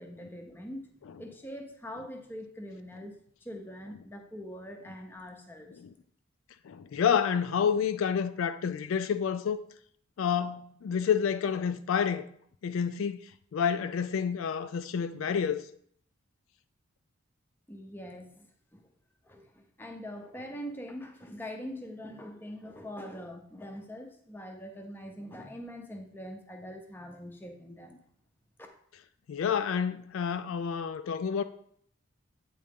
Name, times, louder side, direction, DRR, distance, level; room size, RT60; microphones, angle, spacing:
voice 1, 0.0-3.2 3.4-5.8 17.7-18.5 18.7-18.8 19.2-28.0, equal, 10° left, 0.6 m, -43 dB
voice 2, 6.6-9.6 10.2-12.3 12.6-15.6 29.3-31.4, left 7 dB, 70° left, 0.3 m, -29 dB
8.7 x 3.8 x 3.6 m
head